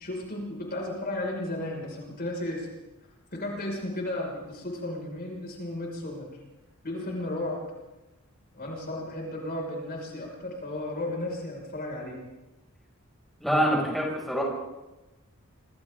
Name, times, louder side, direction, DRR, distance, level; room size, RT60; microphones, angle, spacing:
voice 1, 0.0-2.7 3.3-6.3 6.8-7.6 8.5-12.2, left 1 dB, 45° left, -1 dB, 6.1 m, -34 dB
voice 2, 13.4-14.4, equal, ahead, -3 dB, 6.7 m, -25 dB
27.0 x 25.5 x 3.9 m, 1.0 s
head